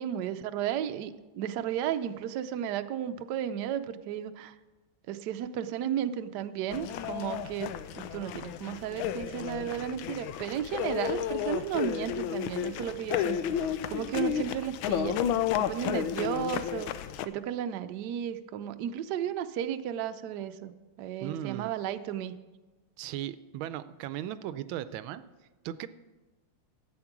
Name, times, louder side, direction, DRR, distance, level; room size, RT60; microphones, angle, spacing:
voice 1, 0.0-4.5 5.1-15.2 15.6-16.9 17.2-20.7 21.0-22.3, right 10 dB, 70° right, 9 dB, 1.1 m, -34 dB
sound 1, 6.7-17.3, left 10 dB, 90° left, 1.4 m, -32 dB
voice 2, 21.2-21.7 23.0-25.2 25.6-25.9, right 12 dB, 85° right, 14 dB, 1.4 m, -37 dB
12.5 x 8.7 x 6.0 m, 1.2 s
omnidirectional pair, 2.2 m